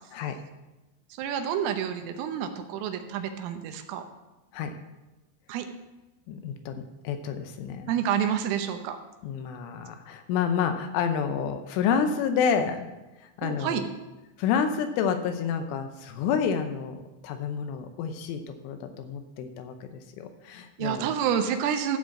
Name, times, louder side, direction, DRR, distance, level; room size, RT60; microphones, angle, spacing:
voice 1, 1.2-4.0 5.5-5.7 7.9-9.0 13.4-13.8 20.8-22.0, right 9 dB, 85° right, 6 dB, 3.4 m, -28 dB
voice 2, 6.3-7.9 9.2-12.9 13.2-13.9 14.4-21.1, left 7 dB, 80° left, 7 dB, 3.2 m, -29 dB
13.5 x 5.0 x 7.2 m, 1.1 s
omnidirectional pair, 5.9 m